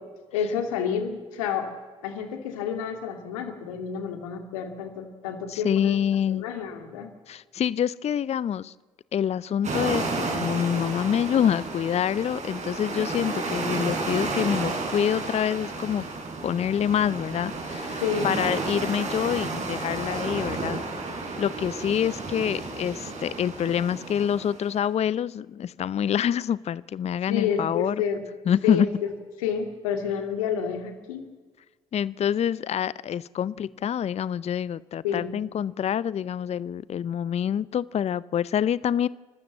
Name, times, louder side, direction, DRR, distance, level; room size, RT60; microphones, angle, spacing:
voice 1, 0.3-1.7 2.0-6.0 6.3-7.1 18.0-18.3 27.3-28.2 28.6-29.1 29.4-31.3 35.0-35.4, left 7 dB, 80° left, 6 dB, 2.4 m, -29 dB
voice 2, 5.5-6.5 7.3-8.7 9.1-16.1 16.4-21.1 21.4-28.0 28.5-28.9 31.9-39.1, left 9 dB, 40° left, 21 dB, 0.5 m, -26 dB
sound 1, 9.6-24.8, right 3 dB, 40° right, 5.2 m, -32 dB
29.5 x 13.0 x 7.5 m, 1.4 s
hypercardioid pair, 50°, 17 cm